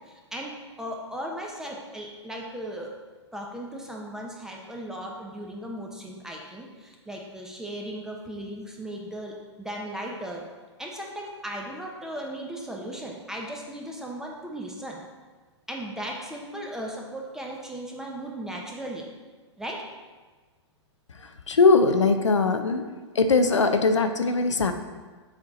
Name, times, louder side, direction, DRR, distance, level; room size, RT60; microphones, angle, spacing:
voice 1, 0.1-2.9 3.3-10.5 10.8-15.0 15.7-19.1 19.6-19.8, right 1 dB, 5° right, -1 dB, 0.9 m, -37 dB
voice 2, 21.2-22.8 23.1-24.7, left 4 dB, 85° left, 7 dB, 0.6 m, -21 dB
7.0 x 4.6 x 3.9 m, 1.4 s
hypercardioid pair, 115°, 15 cm